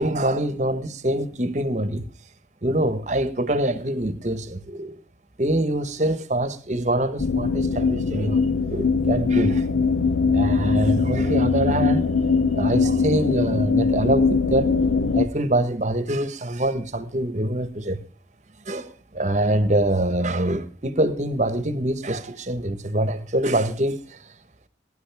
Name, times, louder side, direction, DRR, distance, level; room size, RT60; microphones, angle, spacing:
voice 1, 0.0-2.1 2.6-4.9 5.4-9.7 10.3-12.0 12.5-14.8 15.1-18.0 18.7-24.2, right 1 dB, 40° right, 1.2 m, -24 dB
sound 1, 7.2-15.3, left 4 dB, 85° left, 0.8 m, -21 dB
20.5 x 11.5 x 3.5 m
head